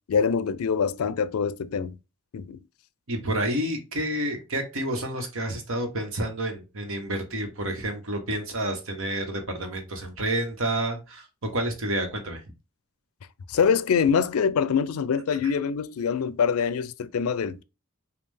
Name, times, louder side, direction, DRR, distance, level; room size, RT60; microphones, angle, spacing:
voice 1, 0.1-2.0 2.3-2.6 13.5-17.6, left 6 dB, 80° left, 0.4 m, -24 dB
voice 2, 3.1-12.4 15.4-15.5, right 1 dB, 65° right, 1.2 m, -29 dB
5.3 x 2.4 x 3.4 m
head